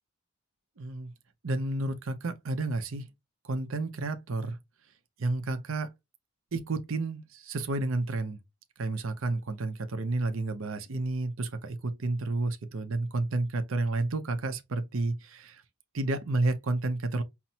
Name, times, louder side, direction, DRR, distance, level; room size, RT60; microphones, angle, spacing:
voice 1, 0.8-1.1 1.4-3.1 3.4-4.6 5.2-5.9 6.5-8.4 8.8-15.6 15.9-17.2, right 2 dB, 65° right, 0.6 m, -31 dB
5.7 x 2.0 x 2.8 m
head